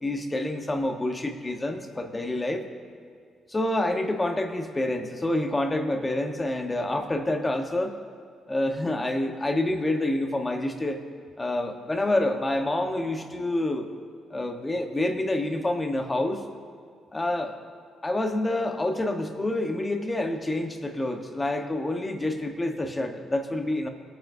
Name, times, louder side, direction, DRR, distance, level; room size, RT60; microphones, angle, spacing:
voice 1, 0.0-2.7 3.5-8.0 8.5-11.0 11.4-13.9 14.3-16.4 17.1-17.6 18.0-23.9, left 1 dB, 20° left, 4 dB, 1.2 m, -27 dB
20.5 x 9.0 x 2.8 m, 2.1 s
cardioid pair, 90°, 0 cm